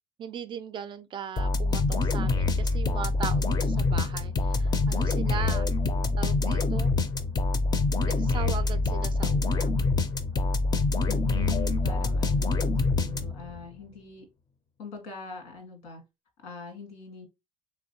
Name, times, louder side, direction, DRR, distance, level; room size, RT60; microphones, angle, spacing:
voice 1, 0.2-5.7 6.2-6.9 8.0-9.9, right 8 dB, 35° right, 0.3 m, -38 dB
sound 1, 1.4-13.6, left 3 dB, 30° left, 0.4 m, -25 dB
voice 2, 11.1-14.3 14.8-16.0 16.4-17.3, left 5 dB, 90° left, 1.6 m, -41 dB
3.4 x 3.0 x 2.7 m
cardioid pair, 130°, 14 cm